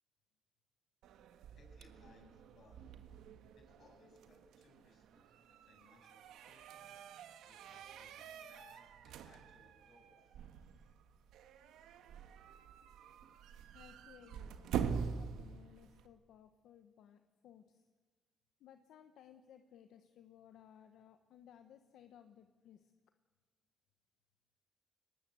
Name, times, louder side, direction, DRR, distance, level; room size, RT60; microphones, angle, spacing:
sound 1, 1.0-16.1, right 7 dB, 85° right, 1.6 m, -46 dB
voice 1, 1.6-2.8 3.6-7.0 7.4-10.4, left 2 dB, 55° left, 3 dB, 7.2 m, -66 dB
voice 2, 13.7-17.9 18.6-22.9, left 9 dB, 80° left, 8 dB, 1.2 m, -60 dB
23.0 x 19.5 x 7.7 m, 1.4 s
cardioid pair, 90°, 0 cm